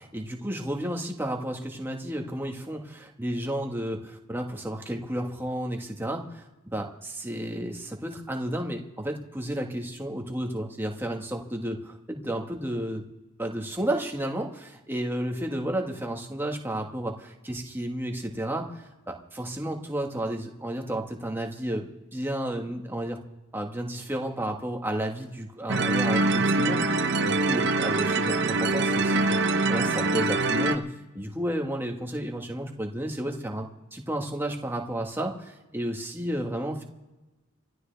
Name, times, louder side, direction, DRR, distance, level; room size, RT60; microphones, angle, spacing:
voice 1, 0.0-13.1 13.4-23.2 23.5-30.8 31.1-36.8, right 1 dB, 10° right, 2 dB, 1.6 m, -32 dB
sound 1, 25.7-30.8, right 3 dB, 55° right, 0.8 m, -24 dB
27.5 x 12.5 x 3.5 m, 1.1 s
head